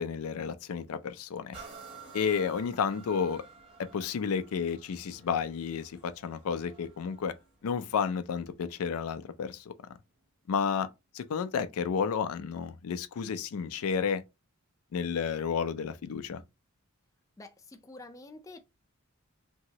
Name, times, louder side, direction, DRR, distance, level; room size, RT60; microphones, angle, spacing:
voice 1, 0.0-1.6 2.1-3.4 3.9-7.3 7.6-9.7 10.5-10.9 11.1-14.2 14.9-16.4, left 6 dB, 80° left, 0.4 m, -31 dB
sound 1, 1.5-9.1 9.7-9.8, right 5 dB, 25° right, 1.0 m, -52 dB
voice 2, 17.4-18.6, left 2 dB, 15° left, 0.3 m, -48 dB
2.9 x 2.7 x 2.8 m
head